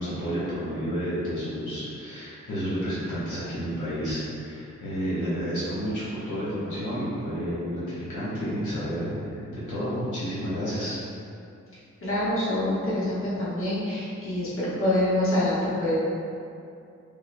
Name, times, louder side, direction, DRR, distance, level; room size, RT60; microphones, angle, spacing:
voice 1, 0.0-11.0, equal, 75° left, -10 dB, 1.2 m, -30 dB
voice 2, 12.0-16.0, left 1 dB, 45° left, -10 dB, 1.3 m, -26 dB
5.3 x 2.3 x 2.2 m, 2.5 s
cardioid pair, 80°, 30 cm